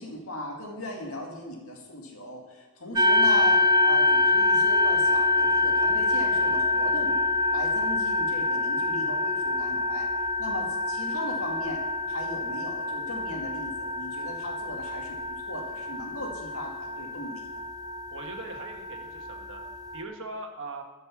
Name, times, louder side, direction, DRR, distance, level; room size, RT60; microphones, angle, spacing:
voice 1, 0.0-7.2 7.5-10.1 10.4-11.8 12.1-17.5, left 1 dB, 70° left, 0 dB, 2.1 m, -37 dB
sound 1, 3.0-20.0, left 3 dB, 15° right, 0.5 m, -26 dB
voice 2, 18.1-19.6 19.9-20.8, right 2 dB, 60° right, 4 dB, 1.3 m, -40 dB
12.0 x 5.4 x 7.1 m, 1.2 s
head